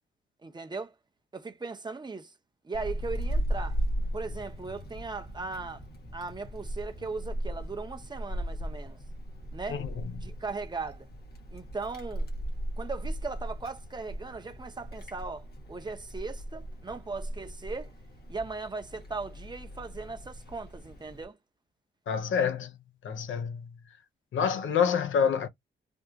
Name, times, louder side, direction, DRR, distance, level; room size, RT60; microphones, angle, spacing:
voice 1, 0.4-0.9 1.3-2.3 2.6-3.8 4.1-5.8 6.1-9.0 9.5-9.8 10.2-11.1 11.5-12.3 12.8-17.9 18.3-21.4, right 4 dB, 20° right, 0.6 m, -38 dB
Wind, 2.7-21.2, right 1 dB, 55° left, 1.1 m, -37 dB
voice 2, 22.1-22.7 23.0-23.7 24.3-25.5, left 7 dB, 90° left, 0.6 m, -27 dB
3.4 x 2.3 x 2.8 m
wide cardioid pair, 130°, 20 cm